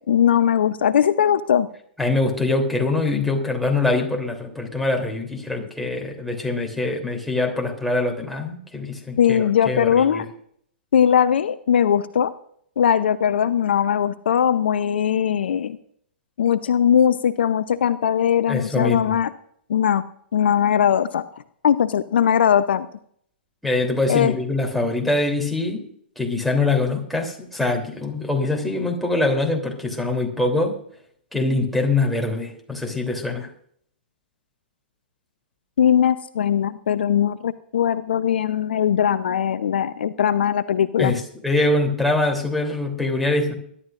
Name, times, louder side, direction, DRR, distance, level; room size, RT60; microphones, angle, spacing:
voice 1, 0.1-1.7 9.2-10.2 10.9-12.3 12.8-15.8 16.4-19.3 19.7-20.0 20.3-21.3 21.6-22.9 24.1-24.3 35.8-41.1, left 9 dB, 70° left, 14 dB, 0.7 m, -20 dB
voice 2, 2.0-10.3 18.5-19.2 23.6-25.8 26.2-30.8 31.3-33.5 41.0-43.5, left 2 dB, ahead, 0 dB, 3.2 m, -23 dB
22.5 x 11.5 x 2.5 m, 0.63 s
hypercardioid pair, 115°, 6 cm